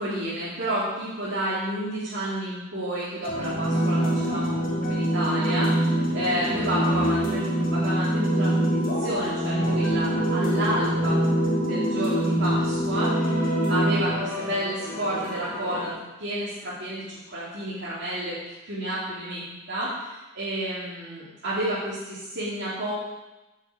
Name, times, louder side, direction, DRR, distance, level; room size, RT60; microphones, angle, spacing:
voice 1, 0.0-11.3 11.6-15.9 16.2-18.4 18.6-22.9, right 1 dB, 55° right, -10 dB, 3.1 m, -30 dB
sound 1, 3.2-15.9, equal, 45° left, 2.8 m, -25 dB
15.0 x 7.2 x 4.8 m, 1.1 s
head